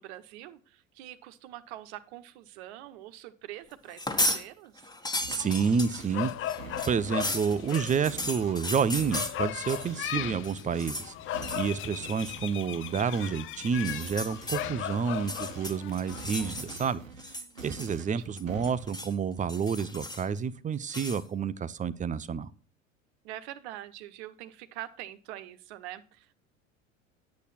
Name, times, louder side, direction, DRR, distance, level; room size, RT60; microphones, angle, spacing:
voice 1, 0.0-4.9 17.2-18.2 23.2-26.3, right 14 dB, 55° right, 12 dB, 1.2 m, -45 dB
sound 1, 3.9-4.4 4.8-10.1 10.4-11.1 11.4-11.7 12.1-12.4 13.7-14.6 15.2-16.9 17.2-18.1 18.4-19.1 19.5-20.4 20.9-21.2, left 1 dB, 10° left, 1.6 m, -35 dB
sound 2, 5.2-6.2 6.6-15.8 16.1-19.0, right 4 dB, 90° right, 1.0 m, -46 dB
voice 2, 5.3-6.5 6.9-11.1 11.6-17.0 17.6-22.5, right 6 dB, 20° right, 16 dB, 0.7 m, -29 dB
sound 3, 5.4-17.0, left 12 dB, 30° left, 0.6 m, -38 dB
10.5 x 8.3 x 4.2 m, 0.39 s
figure-of-eight pair, 75°, 39 cm